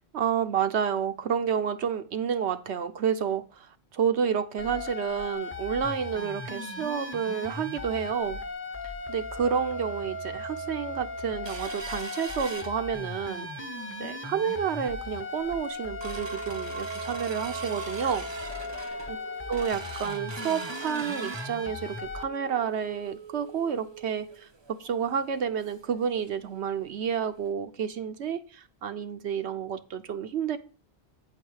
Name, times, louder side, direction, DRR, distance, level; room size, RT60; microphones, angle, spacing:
voice 1, 0.1-8.4 9.1-13.5 14.0-18.3 19.5-30.6, right 7 dB, 85° right, 1.1 m, -30 dB
sound 1, 4.6-22.2, left 2 dB, 15° left, 0.7 m, -37 dB
sound 2, 11.4-13.3 13.7-13.8 14.2-14.5 15.0-15.1 15.4-26.0 26.3-26.4 26.7-26.9 27.4-27.5, right 5 dB, 35° right, 0.5 m, -42 dB
8.9 x 4.8 x 4.8 m
omnidirectional pair, 1.1 m